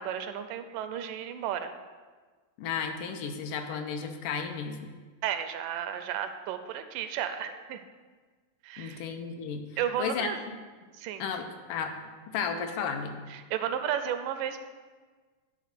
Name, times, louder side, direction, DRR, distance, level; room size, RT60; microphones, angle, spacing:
voice 1, 0.0-1.7 5.2-7.8 8.6-9.0 9.8-10.4 10.9-11.2 13.3-14.6, right 9 dB, 85° right, 8 dB, 2.1 m, -33 dB
voice 2, 2.6-4.9 8.8-9.6 10.0-10.3 11.2-12.0 12.3-13.2, left 6 dB, 80° left, 5 dB, 2.2 m, -33 dB
10.0 x 3.9 x 6.6 m, 1.4 s
omnidirectional pair, 3.8 m